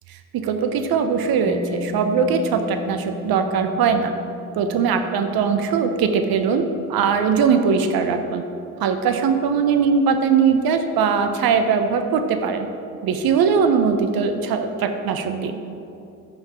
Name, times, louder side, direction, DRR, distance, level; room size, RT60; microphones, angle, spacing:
voice 1, 0.1-4.1 4.5-8.4 8.8-12.7 13.0-15.6, right 6 dB, 60° right, 7 dB, 1.0 m, -20 dB
Mallet percussion, 1.4-8.9, left 2 dB, 10° left, 1.2 m, -38 dB
14.5 x 5.9 x 4.4 m, 2.7 s
hypercardioid pair, 50°, 41 cm